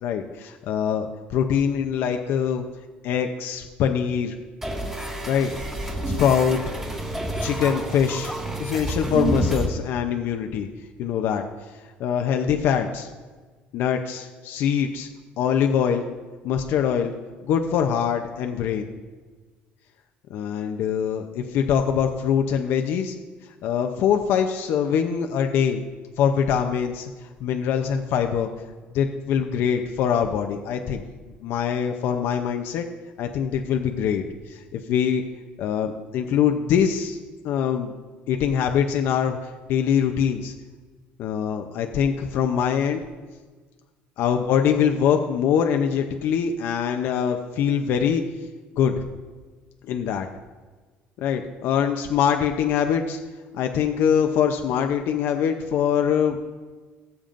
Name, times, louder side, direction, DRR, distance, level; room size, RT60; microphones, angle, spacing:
voice 1, 0.0-2.6 3.0-4.3 5.3-5.5 6.1-6.6 7.4-8.3 8.6-10.7 11.0-11.4 11.7-13.1 13.7-15.1 15.4-16.1 16.4-17.1 17.4-18.9 20.3-23.2 23.6-25.8 26.2-28.5 28.9-31.0 31.4-32.9 33.2-35.2 35.6-37.2 37.4-37.9 38.3-40.5 41.2-43.0 44.2-48.2 48.8-49.0 49.9-50.3 51.2-53.2 53.5-56.4, left 8 dB, 70° left, 5 dB, 0.7 m, -23 dB
sound 1, 4.6-9.7, right 1 dB, 15° right, 1.8 m, -28 dB
19.0 x 7.2 x 2.6 m, 1.4 s
cardioid pair, 105°, 4 cm